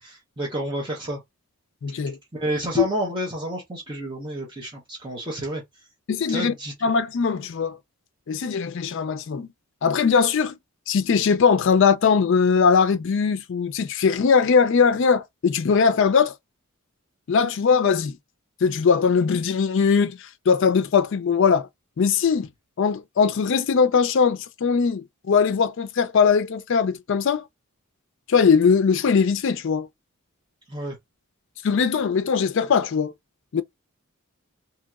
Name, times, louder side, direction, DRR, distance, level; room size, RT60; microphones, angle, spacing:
voice 1, 0.0-1.2 2.3-5.6 6.3-6.7 30.7-31.0, right 1 dB, 20° right, 0.9 m, -30 dB
voice 2, 1.8-2.2 2.8-2.9 6.1-6.5 6.8-7.8 8.3-9.5 9.8-10.6 10.9-16.3 17.3-18.2 18.6-20.2 20.5-21.7 22.0-22.5 22.8-27.4 28.3-29.9 31.6-33.1 33.5-33.6, left 6 dB, 55° left, 0.4 m, -20 dB
2.9 x 2.8 x 2.3 m
head